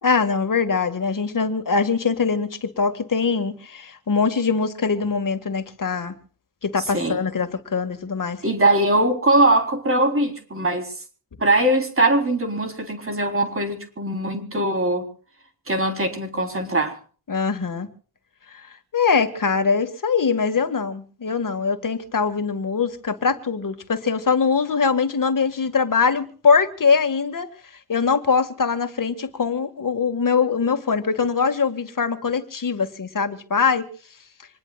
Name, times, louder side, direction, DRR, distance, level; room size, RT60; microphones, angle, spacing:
voice 1, 0.0-6.1 6.6-8.4 17.3-17.9 18.5-18.6 18.9-27.5 27.9-33.9, left 5 dB, 60° left, 2.0 m, -22 dB
voice 2, 8.4-10.9 11.4-15.1 15.7-17.0, right 1 dB, 35° right, 4.0 m, -21 dB
26.0 x 20.5 x 2.4 m
wide cardioid pair, 120°, 37 cm